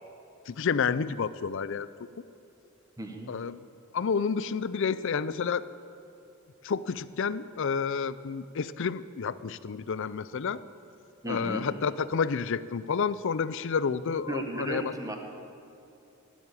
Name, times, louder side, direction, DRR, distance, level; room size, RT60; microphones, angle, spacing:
voice 1, 0.5-1.9 3.3-3.6 3.9-5.7 6.6-10.6 11.3-14.9, left 6 dB, 65° left, 16 dB, 0.5 m, -30 dB
voice 2, 3.0-3.3 11.2-11.7 14.3-15.2, right 1 dB, 15° right, 3 dB, 1.4 m, -34 dB
18.0 x 7.2 x 8.3 m, 2.7 s
head